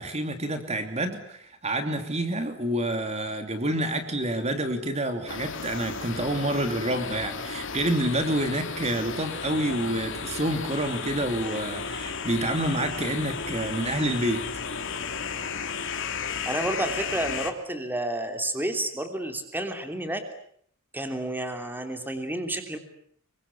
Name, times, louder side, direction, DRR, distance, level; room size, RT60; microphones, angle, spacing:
voice 1, 0.0-14.5, right 1 dB, 30° right, 7 dB, 2.9 m, -28 dB
sound 1, 5.3-17.5, left 5 dB, 65° left, 2.9 m, -34 dB
voice 2, 16.4-20.2 20.9-22.8, right 1 dB, 10° right, 6 dB, 3.1 m, -30 dB
27.0 x 23.5 x 8.5 m, 0.64 s
head